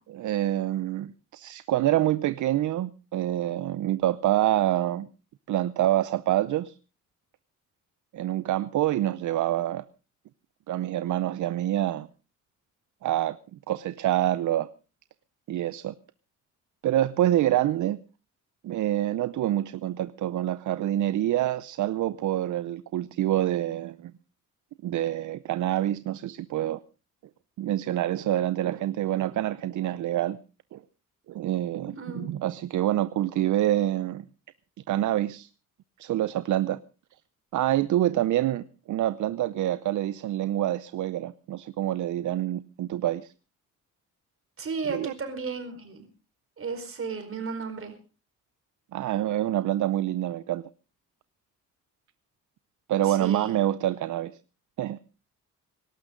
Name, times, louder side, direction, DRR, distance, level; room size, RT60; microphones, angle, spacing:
voice 1, 0.1-5.1 5.5-6.8 8.1-9.8 10.7-12.1 13.0-14.7 15.5-15.9 16.8-18.0 18.6-24.1 24.8-26.8 27.6-30.4 30.7-30.8 31.3-34.2 34.9-35.5 36.0-36.8 37.5-43.3 44.9-45.1 48.9-50.6 52.9-54.3 54.8-55.0, right 13 dB, 70° right, 15 dB, 0.7 m, -26 dB
voice 2, 32.0-32.3 44.6-46.0 46.6-47.9 53.0-53.6, right 5 dB, 45° right, 6 dB, 4.8 m, -34 dB
24.0 x 12.5 x 3.8 m, 0.34 s
cardioid pair, 120°, 32 cm